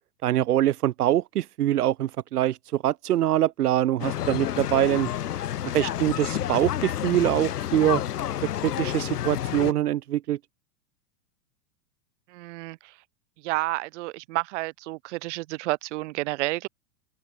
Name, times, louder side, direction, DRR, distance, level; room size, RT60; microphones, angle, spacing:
voice 1, 0.2-5.1 5.7-8.0 8.6-10.4, right 13 dB, 80° right, 1.8 m, -24 dB
sound 1, 4.0-9.7, left 11 dB, 90° left, 2.7 m, -30 dB
voice 2, 12.3-12.9 13.4-16.7, right 20 dB, 50° right, 5.0 m, -30 dB
open air
supercardioid pair, 155°, 45 cm